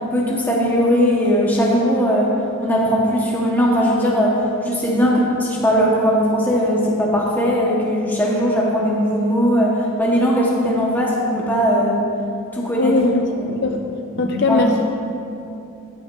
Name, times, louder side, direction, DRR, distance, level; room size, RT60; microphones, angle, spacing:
voice 1, 0.0-2.3 2.6-12.0 12.5-12.9 13.4-13.5 14.1-14.7, equal, 10° left, -4 dB, 1.3 m, -19 dB
voice 2, 12.8-13.3 13.6-13.8 14.2-14.8, left 3 dB, 50° left, 3 dB, 0.5 m, -19 dB
14.5 x 8.9 x 2.7 m, 2.7 s
head